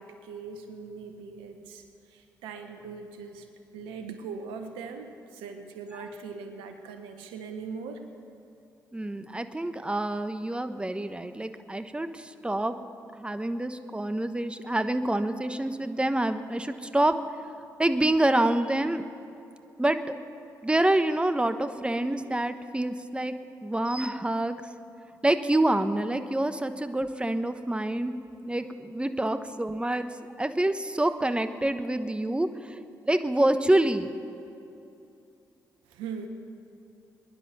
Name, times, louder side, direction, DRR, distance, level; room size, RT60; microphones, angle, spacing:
voice 1, 0.0-1.8 2.1-3.5 3.7-8.0 35.9-36.3, right 5 dB, 85° right, 6 dB, 1.3 m, -40 dB
voice 2, 8.9-12.7 13.1-17.2 17.8-19.0 19.8-20.0 20.6-23.3 23.6-24.6 25.2-28.1 28.4-30.1 30.4-32.8 33.0-34.1, right 1 dB, 10° right, 10 dB, 1.1 m, -27 dB
22.0 x 11.0 x 6.1 m, 2.7 s
hypercardioid pair, 45°, 9 cm